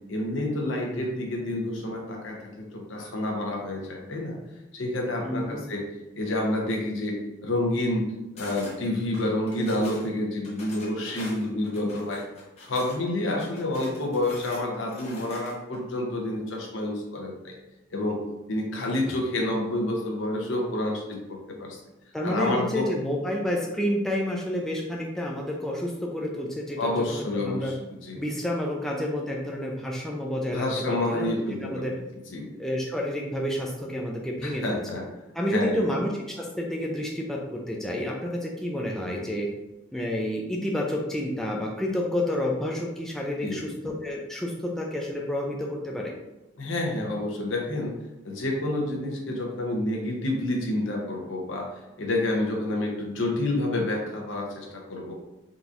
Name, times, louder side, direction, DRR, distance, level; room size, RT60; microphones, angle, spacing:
voice 1, 0.1-4.3 4.7-5.8 6.2-7.2 7.4-8.1 8.4-12.2 12.6-17.5 17.9-18.2 18.5-21.8 22.2-22.9 26.8-27.8 28.0-28.2 30.5-31.9 32.3-32.5 34.4-35.0 35.5-35.8 43.4-43.6 46.6-47.9 48.2-51.7 52.0-55.1, left 1 dB, 75° left, 0 dB, 0.8 m, -28 dB
voice 2, 5.2-5.6 18.8-18.9 22.1-27.7 28.2-31.3 31.6-32.0 32.6-34.8 35.3-39.5 39.9-46.1, left 1 dB, ahead, -1 dB, 0.3 m, -29 dB
sound 1, 8.4-8.8 9.1-10.1 10.4-13.0 13.3-15.8, left 1 dB, 35° left, 0.9 m, -45 dB
3.8 x 2.8 x 2.4 m, 0.99 s
head